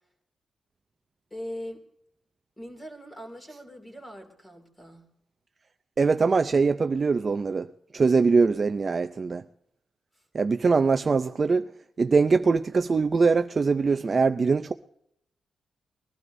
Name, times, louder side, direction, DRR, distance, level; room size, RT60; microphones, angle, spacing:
voice 1, 1.3-1.8 2.6-5.1, equal, 10° left, 2.5 m, -41 dB
voice 2, 6.0-7.7 7.9-9.4 10.3-11.7 12.0-14.7, right 4 dB, 30° right, 0.4 m, -22 dB
22.0 x 15.5 x 2.6 m
wide cardioid pair, 170°, 0 cm